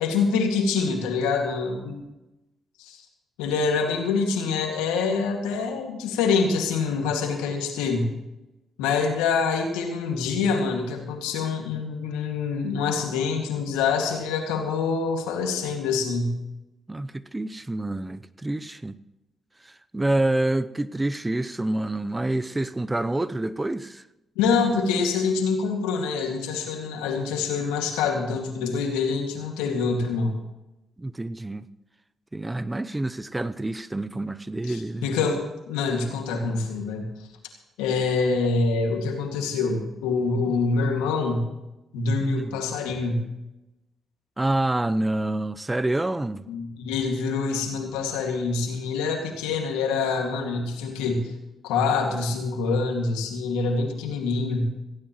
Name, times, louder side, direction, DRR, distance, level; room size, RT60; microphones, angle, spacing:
voice 1, 0.0-2.0 2.8-3.0 3.4-8.1 8.8-16.4 24.4-30.4 34.7-37.0 37.8-41.5 41.9-43.3 46.5-51.3 51.6-54.7, left 4 dB, 90° left, 2.1 m, -25 dB
voice 2, 16.9-19.0 19.6-24.0 31.0-31.6 32.3-35.1 40.4-40.6 42.2-42.6 44.4-46.4, right 2 dB, 20° right, 0.7 m, -27 dB
17.5 x 15.5 x 3.1 m
supercardioid pair, 50°, 0 cm